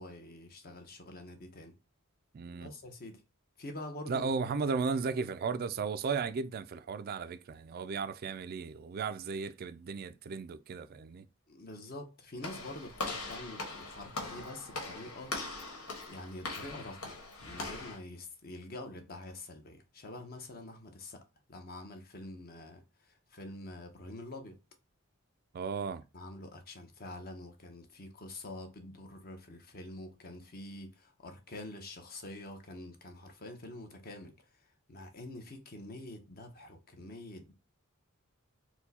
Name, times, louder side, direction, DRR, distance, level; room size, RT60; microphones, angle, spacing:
voice 1, 0.0-1.7 2.6-3.2 3.6-4.3 11.5-15.4 16.1-21.2 21.5-24.6 26.1-34.4 34.9-37.5, left 1 dB, 45° left, 0.9 m, -46 dB
voice 2, 2.3-2.7 4.1-11.2 25.5-26.0, right 5 dB, 45° right, 0.3 m, -35 dB
Walk footsteps / Slam, 12.4-18.0, left 2 dB, 85° left, 1.6 m, -41 dB
4.4 x 2.2 x 4.1 m
head